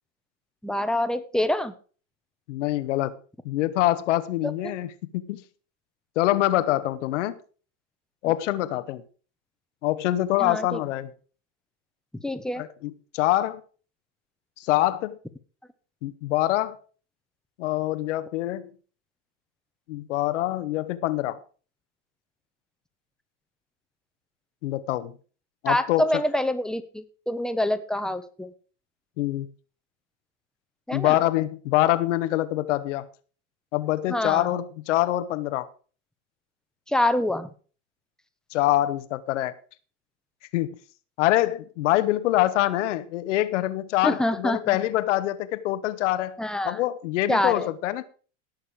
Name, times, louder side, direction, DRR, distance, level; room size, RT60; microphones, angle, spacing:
voice 1, 0.6-1.7 4.4-4.5 8.2-8.3 10.4-10.8 12.2-12.6 25.6-28.5 30.9-31.2 34.1-34.6 36.9-37.5 44.0-44.8 46.4-46.8 47.3-47.7, left 1 dB, ahead, 1.3 m, -26 dB
voice 2, 2.5-3.1 3.4-5.4 6.1-7.4 8.2-9.0 9.8-11.1 12.6-13.6 14.6-15.2 16.0-16.8 17.6-18.7 19.9-21.4 24.6-25.2 25.6-26.2 29.2-29.5 30.9-33.1 33.7-35.7 38.5-39.5 40.5-40.8 41.2-46.4 46.6-48.0, left 15 dB, 70° left, 1.5 m, -25 dB
18.0 x 6.8 x 5.0 m
hypercardioid pair, 110°, 37 cm